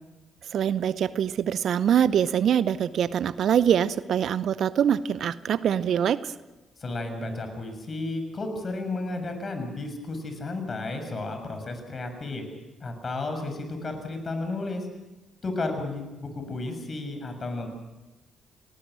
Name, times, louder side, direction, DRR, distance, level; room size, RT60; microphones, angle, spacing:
voice 1, 0.5-6.3, right 9 dB, 65° right, 17 dB, 0.7 m, -24 dB
voice 2, 6.8-12.4 12.8-14.9 15.4-17.7, left 2 dB, 45° left, 6 dB, 6.6 m, -33 dB
29.5 x 19.5 x 6.4 m, 1.0 s
hypercardioid pair, 45°, 0 cm